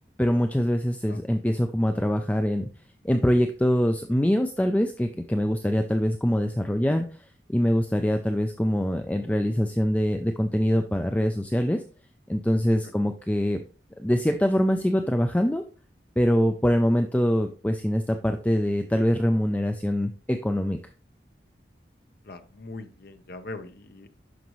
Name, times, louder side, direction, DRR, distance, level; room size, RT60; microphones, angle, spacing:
voice 1, 0.2-2.7 3.0-7.0 7.5-11.8 12.3-13.6 14.0-15.6 16.2-20.8, equal, 10° left, 6 dB, 0.4 m, -24 dB
voice 2, 22.2-24.1, left 2 dB, 55° left, 9 dB, 0.8 m, -41 dB
11.5 x 5.2 x 3.1 m, 0.37 s
head